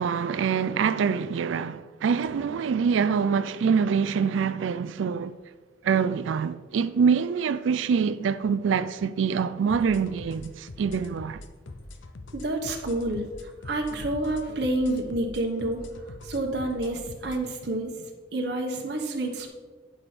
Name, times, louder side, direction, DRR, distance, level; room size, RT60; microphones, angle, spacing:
voice 1, 0.0-5.3 5.8-11.4, right 6 dB, 80° right, 0.3 m, -25 dB
sound 1, 9.7-17.4, left 2 dB, 80° left, 0.7 m, -44 dB
voice 2, 12.3-13.2 13.6-15.8 16.2-17.9 18.3-19.5, right 1 dB, 60° right, 1.0 m, -28 dB
9.0 x 6.0 x 4.9 m
head